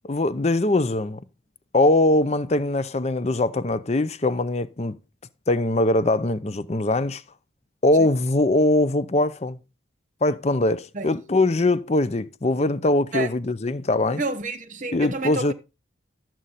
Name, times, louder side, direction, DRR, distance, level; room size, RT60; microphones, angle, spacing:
voice 1, 0.0-1.2 1.7-5.0 5.5-7.2 7.8-9.6 10.2-14.2 14.9-15.5, left 2 dB, 35° left, 0.6 m, -22 dB
voice 2, 14.2-15.5, right 3 dB, 40° right, 1.0 m, -30 dB
13.0 x 7.6 x 4.1 m
head